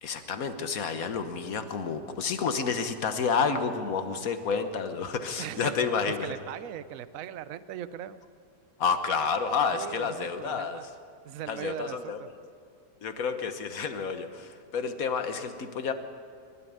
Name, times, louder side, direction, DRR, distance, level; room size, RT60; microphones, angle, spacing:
voice 1, 0.0-6.3 8.8-10.8 11.5-12.2 13.0-15.9, left 5 dB, 55° left, 8 dB, 1.6 m, -30 dB
voice 2, 5.4-5.8 6.2-8.2 9.7-10.9 11.2-12.3, right 10 dB, 60° right, 14 dB, 1.0 m, -39 dB
23.0 x 12.5 x 9.4 m, 2.2 s
omnidirectional pair, 1.8 m